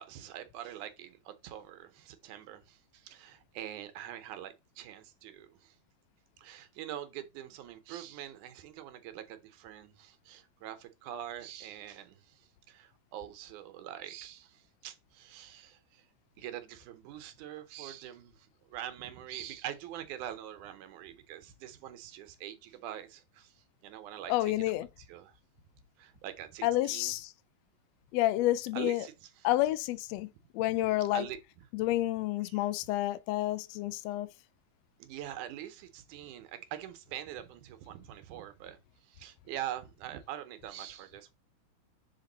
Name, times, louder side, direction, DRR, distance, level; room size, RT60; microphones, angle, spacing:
voice 1, 0.0-5.8 6.4-16.0 16.4-23.5 23.8-24.5 25.1-25.3 26.0-27.2 28.7-29.3 31.1-31.4 32.4-32.6 35.0-38.8 39.1-41.3, right 11 dB, 80° right, 2.2 m, -44 dB
voice 2, 24.3-24.9 26.6-27.3 28.1-29.1 29.4-31.2 31.7-34.3, left 16 dB, 90° left, 1.4 m, -29 dB
5.9 x 4.4 x 3.9 m
omnidirectional pair, 3.6 m